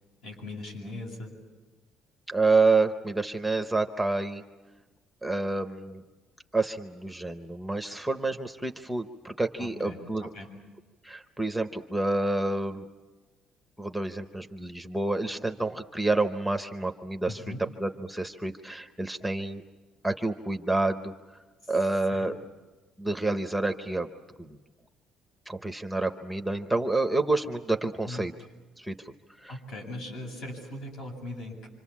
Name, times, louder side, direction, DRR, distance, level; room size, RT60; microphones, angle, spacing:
voice 1, 0.2-1.3 9.6-10.5 17.3-17.6 21.6-21.7 22.1-22.3 28.0-28.3 29.5-31.7, left 1 dB, 65° left, 2 dB, 7.9 m, -39 dB
voice 2, 2.3-4.4 5.2-6.0 6.5-10.3 11.0-12.9 13.8-17.4 17.8-19.6 20.0-21.1 21.7-22.3 23.0-24.1 24.4-24.6 25.5-28.3 28.8-29.1 29.4-29.6, right 3 dB, ahead, 6 dB, 0.8 m, -28 dB
26.5 x 26.5 x 7.3 m, 1.2 s
cardioid pair, 175°, 0 cm